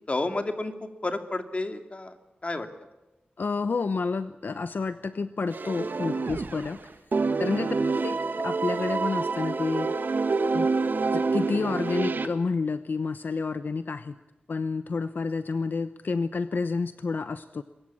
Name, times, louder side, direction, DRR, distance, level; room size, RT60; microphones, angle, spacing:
voice 1, 0.1-2.1 2.4-2.7 7.5-7.7, left 2 dB, 40° left, 7 dB, 2.6 m, -31 dB
voice 2, 3.4-6.9 7.4-7.7 8.0-9.9 10.5-10.7 11.1-14.2 14.5-17.6, left 4 dB, 70° left, 11 dB, 0.9 m, -29 dB
sound 1, 5.5-6.8 7.1-12.3, right 4 dB, 70° right, 1.8 m, -27 dB
23.0 x 21.5 x 8.6 m, 1.0 s
wide cardioid pair, 105°, 3 cm